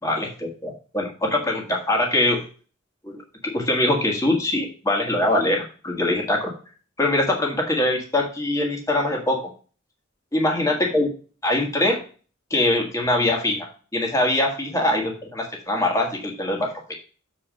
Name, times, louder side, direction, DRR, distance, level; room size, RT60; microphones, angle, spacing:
voice 1, 0.0-2.4 3.0-3.2 3.4-6.5 7.0-9.5 10.3-11.1 11.4-12.0 12.5-16.9, left 1 dB, 15° left, 0 dB, 1.6 m, -23 dB
7.3 x 4.5 x 5.1 m, 0.38 s
head